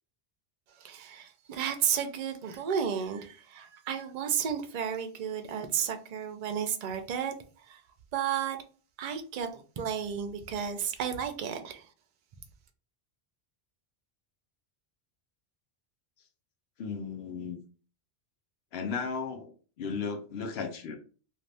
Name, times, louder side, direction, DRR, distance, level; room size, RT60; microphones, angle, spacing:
voice 1, 0.8-7.4 7.7-7.8 8.1-8.6 9.0-11.9, right 8 dB, 50° right, 0.5 m, -32 dB
voice 2, 16.8-17.6 18.7-21.0, left 5 dB, 80° left, 0.9 m, -35 dB
2.6 x 2.5 x 3.3 m
omnidirectional pair, 1.1 m